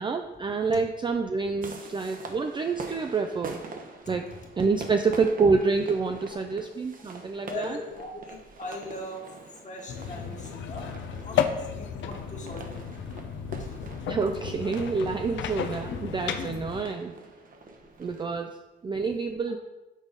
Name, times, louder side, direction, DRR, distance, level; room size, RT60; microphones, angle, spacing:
voice 1, 0.0-3.6 4.1-7.8 14.1-17.1 18.0-19.6, right 4 dB, 25° right, 5 dB, 0.4 m, -27 dB
sound 1, 1.6-18.2, right 3 dB, 45° right, 0.9 m, -45 dB
voice 2, 7.4-9.2 9.6-12.6 13.6-13.9, left 2 dB, 40° left, 0 dB, 1.5 m, -40 dB
sound 2, 9.9-16.8, left 8 dB, 70° left, 0.6 m, -33 dB
6.1 x 3.9 x 5.1 m, 1.1 s
cardioid pair, 90°, 20 cm